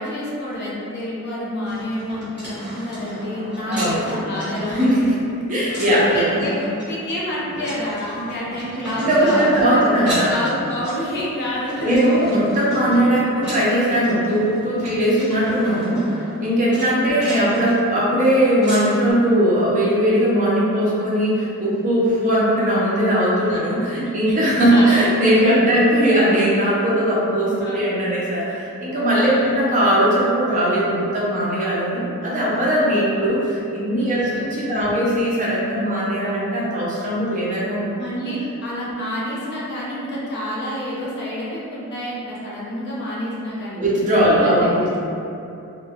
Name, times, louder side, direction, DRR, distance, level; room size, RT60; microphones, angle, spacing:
voice 1, 0.0-5.1 5.9-6.6 6.8-9.9 10.3-12.2 16.8-17.2 23.2-23.3 23.5-23.6 24.3-24.4 24.7-25.0 25.4-25.6 27.6-27.9 29.3-29.6 33.0-33.4 34.1-34.9 38.0-43.8 44.2-44.7, left 1 dB, 50° left, -7 dB, 0.6 m, -29 dB
sound 1, 1.6-19.1, equal, 10° right, 1.5 m, -34 dB
voice 2, 3.7-4.0 4.6-5.1 5.5-6.4 9.0-10.3 11.8-37.9 43.7-45.0, equal, 35° right, -7 dB, 0.5 m, -19 dB
3.1 x 2.1 x 2.3 m, 2.6 s
head